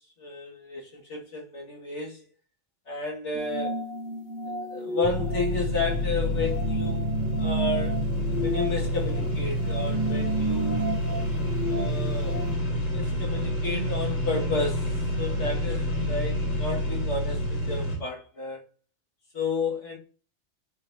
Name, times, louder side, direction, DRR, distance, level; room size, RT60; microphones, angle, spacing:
voice 1, 0.2-2.2 2.9-3.8 4.4-8.0 8.4-10.9 11.6-12.4 12.9-18.6 19.3-20.0, left 3 dB, 75° left, 2.2 m, -32 dB
sound 1, 3.3-12.6, right 1 dB, 15° right, 2.1 m, -33 dB
sound 2, 5.0-18.0, equal, 55° left, 2.6 m, -28 dB
11.0 x 4.1 x 2.7 m
omnidirectional pair, 1.2 m